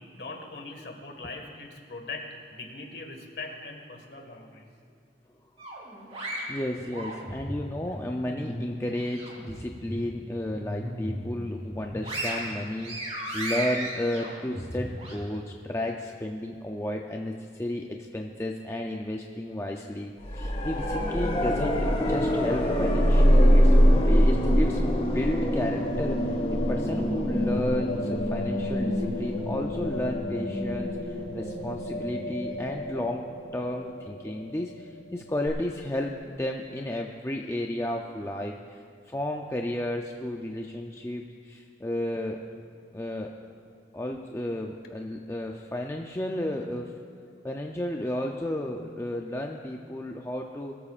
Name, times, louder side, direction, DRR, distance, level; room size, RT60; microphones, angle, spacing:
voice 1, 0.1-4.7, left 3 dB, 65° left, 3 dB, 1.8 m, -41 dB
sound 1, 5.6-7.6 8.0-9.5 9.9-10.0 10.5-11.3 11.7-15.1, right 1 dB, 35° right, 3.5 m, -35 dB
voice 2, 6.2-23.7 24.0-24.8 25.1-26.4 26.7-33.2 33.5-42.4 42.9-43.3 43.9-46.9 47.4-50.8, left 1 dB, 15° left, 1 dB, 0.5 m, -33 dB
sound 2, 20.2-33.1 35.5-35.6, equal, 30° left, 1.7 m, -24 dB
sound 3, 24.8-36.5, left 2 dB, 50° left, 2.7 m, -37 dB
22.0 x 13.5 x 2.5 m, 2.4 s
head